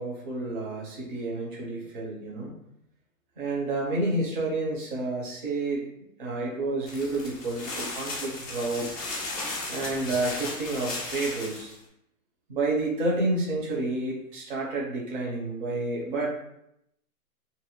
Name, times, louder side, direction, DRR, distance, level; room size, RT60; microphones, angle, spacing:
voice 1, 0.0-2.5 3.4-5.9 6.2-8.9 9.7-11.7 12.5-16.4, right 2 dB, 35° right, -4 dB, 0.7 m, -30 dB
sound 1, 6.9-11.7, left 2 dB, 25° left, 0.4 m, -35 dB
2.6 x 2.1 x 2.8 m, 0.78 s
hypercardioid pair, 165°, 46 cm